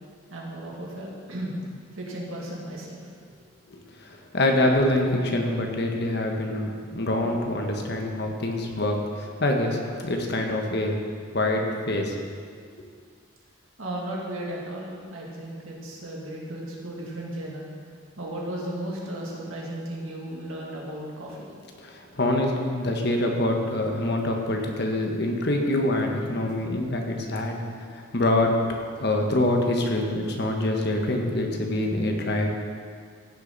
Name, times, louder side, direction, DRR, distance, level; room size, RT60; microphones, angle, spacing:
voice 1, 0.3-1.6 2.0-3.0 13.8-17.7 18.2-21.5, right 1 dB, 80° right, -3 dB, 2.3 m, -35 dB
voice 2, 3.7-11.0 11.3-12.1 21.8-27.6 27.9-28.6 29.0-32.5, left 1 dB, 50° left, 2 dB, 1.2 m, -25 dB
15.5 x 6.6 x 4.0 m, 2.2 s
head